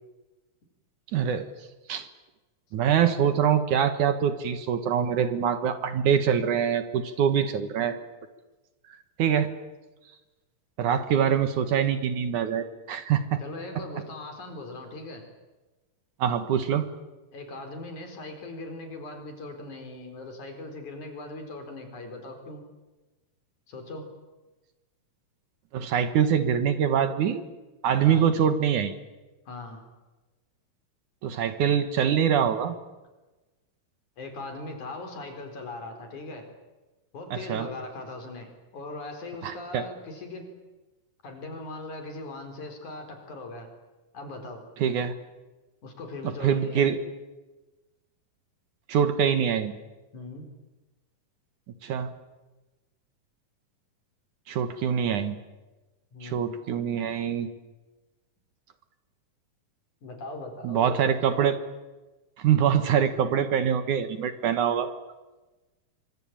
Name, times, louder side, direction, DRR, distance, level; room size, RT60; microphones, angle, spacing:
voice 1, 1.1-1.5 1.9-2.1 2.7-8.0 9.2-9.5 10.8-13.4 16.2-16.9 25.7-27.4 27.8-28.9 31.2-32.8 37.3-37.7 39.4-39.8 44.8-45.1 46.2-47.0 48.9-49.7 51.8-52.1 54.5-55.4 56.2-57.5 60.6-61.6 62.4-64.9, right 8 dB, 65° right, 10 dB, 2.8 m, -24 dB
voice 2, 13.4-15.2 17.3-22.6 23.7-24.1 28.0-28.3 29.5-29.9 34.2-36.5 37.1-40.5 41.2-43.7 44.1-44.6 45.8-46.9 50.1-50.5 56.1-56.7 60.0-61.5, left 2 dB, 60° left, 5 dB, 5.6 m, -39 dB
25.0 x 24.5 x 8.8 m, 1.1 s
omnidirectional pair, 4.0 m